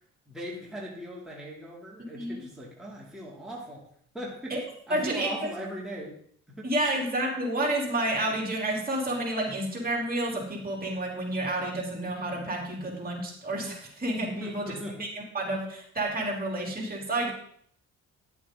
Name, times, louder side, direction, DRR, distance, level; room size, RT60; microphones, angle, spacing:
voice 1, 0.3-3.9 4.1-4.6 4.9-6.2 6.5-6.7 14.4-15.1, equal, ahead, -5 dB, 2.8 m, -39 dB
voice 2, 2.0-2.4 4.5-4.6 4.9-5.3 6.6-14.7 15.0-15.1 15.3-17.3, right 1 dB, 30° right, -1 dB, 3.5 m, -30 dB
10.5 x 8.4 x 3.8 m, 0.63 s
cardioid pair, 90°, 30 cm